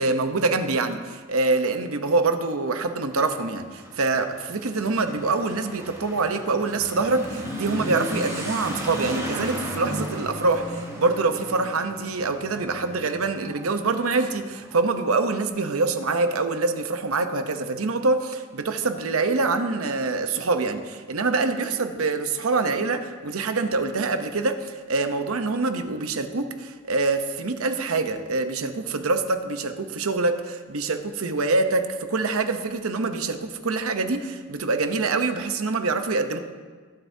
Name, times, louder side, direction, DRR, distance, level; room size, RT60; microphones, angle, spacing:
voice 1, 0.0-36.4, right 3 dB, 80° right, 8 dB, 0.8 m, -25 dB
Motorcycle / Accelerating revving vroom, 3.0-15.3, equal, 15° right, 2.6 m, -35 dB
22.0 x 7.8 x 2.8 m, 1.5 s
head